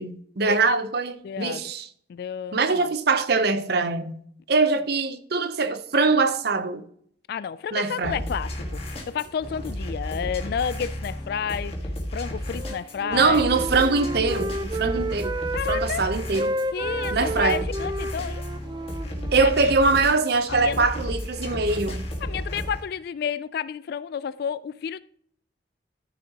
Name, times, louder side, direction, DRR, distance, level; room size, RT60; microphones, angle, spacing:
voice 1, 0.0-1.9 2.5-4.2 4.5-6.8 7.7-8.2 13.0-15.4 15.7-16.5 17.1-17.6 19.3-22.1, right 4 dB, 60° right, 0.8 m, -23 dB
voice 2, 1.2-1.7 2.1-2.9 4.6-4.7 7.3-11.8 12.1-13.5 15.5-16.1 16.7-18.4 19.4-19.7 20.5-20.9 21.7-21.9 22.2-25.0, left 7 dB, 60° left, 0.3 m, -31 dB
sound 1, 8.0-22.8, equal, 35° left, 1.8 m, -33 dB
Wind instrument woodwind instrument, 12.5-15.9 16.2-20.1, right 1 dB, 25° right, 0.5 m, -32 dB
13.5 x 6.5 x 2.9 m
head